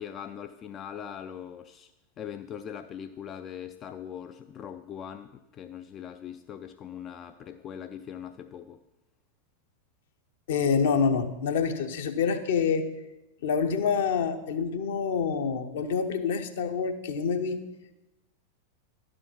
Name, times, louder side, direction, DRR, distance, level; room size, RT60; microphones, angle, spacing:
voice 1, 0.0-1.9 2.2-8.8, left 9 dB, 30° left, 9 dB, 0.3 m, -41 dB
voice 2, 10.5-12.8 13.4-17.6, left 6 dB, 55° left, 7 dB, 0.8 m, -27 dB
11.5 x 5.0 x 5.7 m, 1.0 s
figure-of-eight pair, 90°, 0 cm